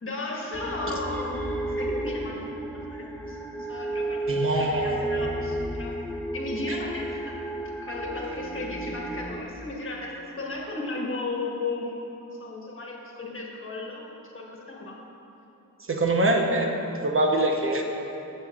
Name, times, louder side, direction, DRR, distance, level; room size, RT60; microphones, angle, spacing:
voice 1, 0.0-2.4 2.9-5.9 6.3-7.4 7.8-15.0, left 3 dB, 35° left, -2 dB, 1.4 m, -35 dB
sound 1, 0.5-9.4, right 2 dB, 5° left, 0.7 m, -32 dB
voice 2, 4.3-4.9 6.7-6.8 15.9-16.7 17.0-17.8, right 1 dB, 35° right, 1 dB, 0.9 m, -23 dB
14.5 x 7.5 x 2.4 m, 2.9 s
wide cardioid pair, 120°, 35 cm